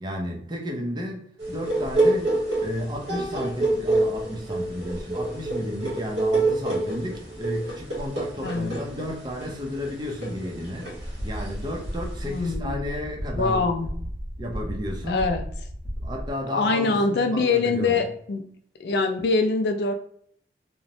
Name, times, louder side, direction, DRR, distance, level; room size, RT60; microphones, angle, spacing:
voice 1, 0.0-2.3 2.6-13.7 14.4-15.2 16.0-18.1, equal, 25° right, 1 dB, 0.5 m, -33 dB
sound 1, 1.4-12.5, right 2 dB, 90° right, 1.1 m, -27 dB
sound 2, 10.9-16.3, equal, 10° left, 0.7 m, -34 dB
voice 2, 12.3-12.8 13.4-13.9 15.1-15.4 16.5-18.4 18.8-19.9, left 3 dB, 60° left, 5 dB, 0.4 m, -23 dB
2.9 x 2.1 x 2.6 m, 0.64 s
head